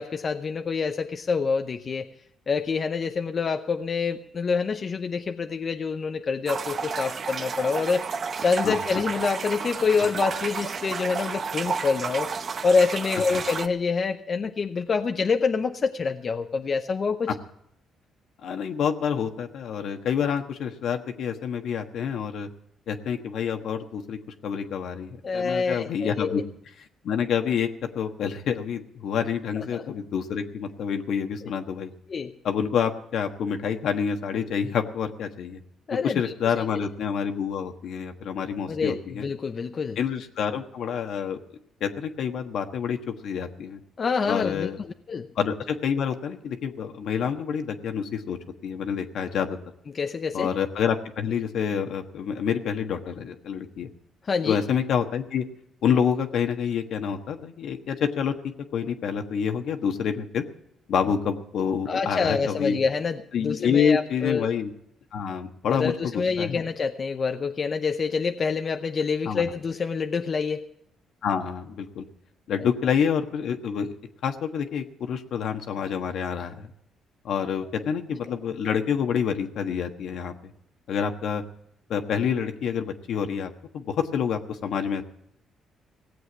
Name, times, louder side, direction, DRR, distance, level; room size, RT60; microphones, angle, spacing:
voice 1, 0.0-2.1 2.5-12.3 12.6-17.3 25.2-26.4 29.6-29.8 31.4-31.5 32.1-32.3 35.9-36.9 38.7-40.0 44.0-45.3 49.9-50.5 54.2-54.6 61.9-64.5 65.7-70.7, left 5 dB, 45° left, 6 dB, 0.8 m, -27 dB
sound 1, 6.5-13.7, right 5 dB, 50° right, 0.8 m, -31 dB
voice 2, 18.4-22.5 22.9-26.4 27.0-27.7 27.9-31.9 32.4-35.6 35.9-39.2 40.0-41.4 41.8-43.8 44.3-44.8 45.4-49.6 50.3-53.9 54.4-55.4 55.8-58.3 58.7-60.4 60.9-62.8 63.3-64.7 65.1-65.9 66.4-66.6 69.3-69.4 71.2-72.0 72.5-74.0 74.2-76.7 77.2-80.3 80.9-81.4 81.9-85.0, left 7 dB, 70° left, 6 dB, 1.4 m, -27 dB
17.5 x 8.0 x 7.9 m, 0.78 s
cardioid pair, 90°, 0 cm